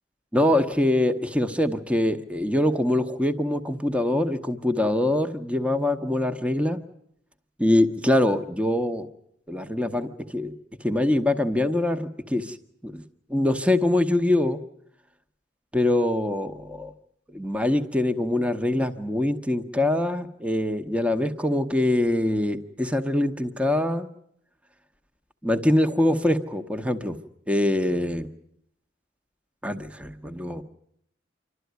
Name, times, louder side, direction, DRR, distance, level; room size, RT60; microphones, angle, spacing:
voice 1, 0.3-6.8 7.6-9.1 9.5-12.6 12.8-13.0 13.3-14.6 15.7-16.9 17.3-24.1 25.4-27.2 27.5-28.3 29.6-30.6, left 1 dB, 5° right, 7 dB, 1.0 m, -24 dB
27.5 x 12.5 x 9.4 m, 0.72 s
head